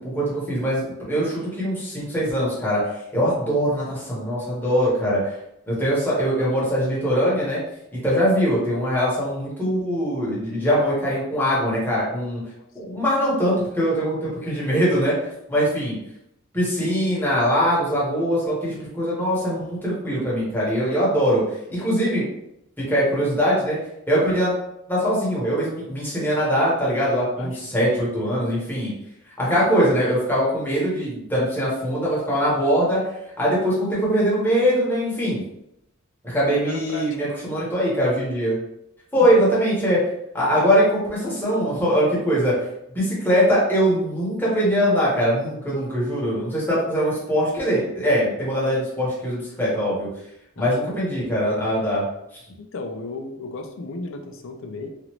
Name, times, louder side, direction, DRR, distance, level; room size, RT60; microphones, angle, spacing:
voice 1, 0.0-5.3 5.7-7.6 7.9-12.4 12.7-15.2 15.5-16.0 16.5-21.4 21.7-22.2 22.8-23.8 24.1-24.5 24.9-28.9 29.4-33.0 33.4-35.4 36.2-38.6 39.1-40.0 40.3-42.5 42.9-50.1 50.6-52.1, equal, 10° left, -7 dB, 1.1 m, -22 dB
voice 2, 36.6-37.3 39.2-39.5 50.6-50.7 52.6-54.9, left 3 dB, 65° left, 5 dB, 0.4 m, -35 dB
3.0 x 2.6 x 2.9 m, 0.81 s
head